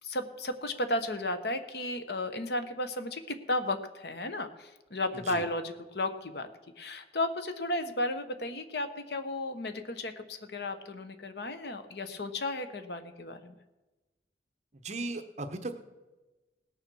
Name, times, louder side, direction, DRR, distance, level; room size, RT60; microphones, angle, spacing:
voice 1, 0.0-6.5 6.8-13.5, left 1 dB, 60° left, 9 dB, 1.1 m, -34 dB
voice 2, 14.8-15.8, right 2 dB, 40° right, 8 dB, 1.0 m, -36 dB
18.5 x 7.0 x 6.3 m, 1.1 s
head